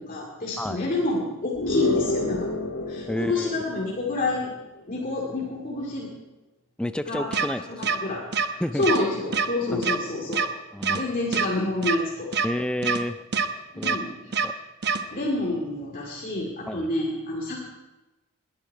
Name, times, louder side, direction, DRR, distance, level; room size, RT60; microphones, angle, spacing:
voice 1, 0.0-2.5 2.9-4.5 4.9-6.1 7.1-7.3 7.7-8.2 8.7-10.4 11.0-12.3 13.7-14.6 15.1-17.6, left 2 dB, 45° left, -3 dB, 2.4 m, -28 dB
sound 1, 1.6-4.5, left 3 dB, 70° left, 1.6 m, -29 dB
voice 2, 3.1-3.6 6.8-7.9 8.6-8.8 9.7-10.0 10.7-11.0 12.4-13.2 13.8-14.0 14.4-14.5 16.7-16.9, left 1 dB, 5° left, 10 dB, 0.4 m, -30 dB
sound 2, 7.3-7.5 7.8-8.0 8.3-8.5 8.8-9.0 9.3-9.5 9.8-10.0 10.3-10.5 10.8-11.0 11.3-11.5 11.8-12.0 12.3-12.5 12.8-13.0 13.3-13.5 13.8-14.0 14.3-14.5 14.8-15.0, right 6 dB, 55° right, 0.9 m, -24 dB
21.0 x 10.5 x 4.7 m, 1.1 s
head